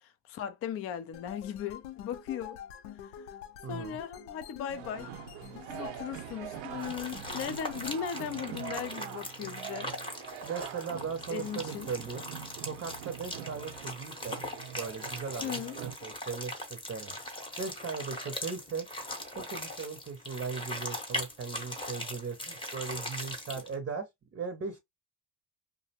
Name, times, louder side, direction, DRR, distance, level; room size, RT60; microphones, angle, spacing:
voice 1, 0.0-2.6 3.0-3.3 3.7-5.1 5.5-9.9 11.3-11.9 15.4-15.8, left 9 dB, 30° left, 0.4 m, -38 dB
sound 1, 1.1-8.0, left 9 dB, 75° left, 0.6 m, -47 dB
voice 2, 3.6-4.0 10.4-12.2 12.6-14.4 14.7-17.1 17.6-18.9 19.3-24.8, right 5 dB, 25° right, 0.7 m, -38 dB
sound 2, 4.8-16.0, right 10 dB, 80° right, 0.7 m, -44 dB
sound 3, 6.8-23.7, left 1 dB, 10° left, 0.8 m, -40 dB
2.4 x 2.1 x 2.7 m
supercardioid pair, 90°, 48 cm